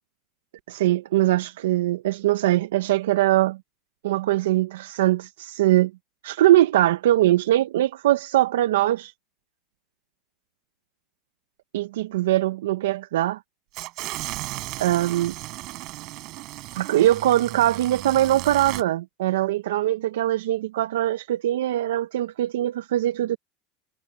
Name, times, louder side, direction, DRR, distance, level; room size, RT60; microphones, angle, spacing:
voice 1, 0.7-3.6 4.0-5.9 6.2-9.1 11.7-13.4 14.8-15.3 16.7-23.4, right 14 dB, 80° right, 1.0 m, -22 dB
sound 1, 13.7-18.8, right 20 dB, 55° right, 5.8 m, -35 dB
hypercardioid pair, 105°, 0 cm